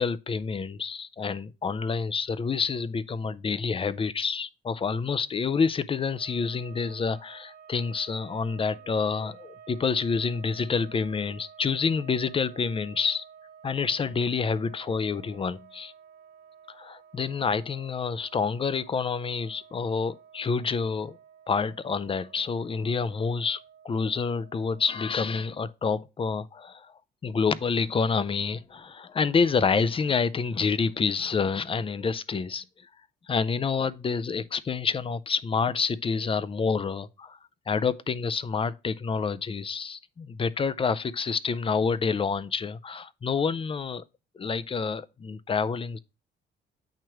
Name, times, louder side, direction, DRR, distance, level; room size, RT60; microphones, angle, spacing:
voice 1, 0.0-13.2 13.6-15.9 16.7-21.2 21.5-23.6 23.8-26.9 27.2-32.6 33.3-37.4 37.7-44.0 44.4-46.0, left 5 dB, 25° left, 0.4 m, -28 dB
sound 1, 6.1-25.7, right 8 dB, 55° right, 0.7 m, -52 dB
8.8 x 3.1 x 4.5 m
cardioid pair, 90°, 20 cm